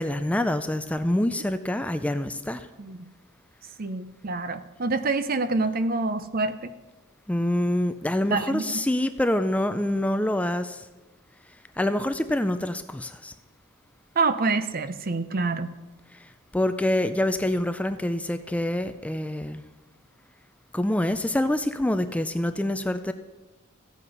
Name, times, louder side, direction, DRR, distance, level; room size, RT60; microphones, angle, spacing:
voice 1, 0.0-2.7 7.3-10.9 11.8-13.3 16.1-19.6 20.7-23.1, left 1 dB, 5° left, 10 dB, 0.4 m, -26 dB
voice 2, 3.8-6.7 8.3-8.7 14.2-15.7, right 3 dB, 45° right, 12 dB, 0.7 m, -26 dB
14.5 x 8.3 x 5.4 m, 1.2 s
head